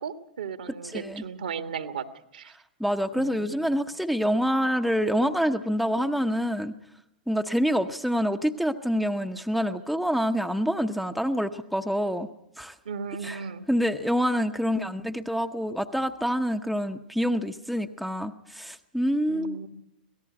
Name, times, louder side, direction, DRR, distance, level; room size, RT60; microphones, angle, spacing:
voice 1, 0.0-2.1 2.3-2.5 3.2-3.7 12.8-13.6 19.3-19.7, right 6 dB, 65° right, 8 dB, 1.6 m, -36 dB
voice 2, 0.8-1.2 2.8-6.7 7.3-12.3 12.6-12.7 13.2-13.4 13.7-19.6, equal, ahead, 5 dB, 0.9 m, -26 dB
25.5 x 18.0 x 6.2 m, 0.84 s
figure-of-eight pair, 100°, 5 cm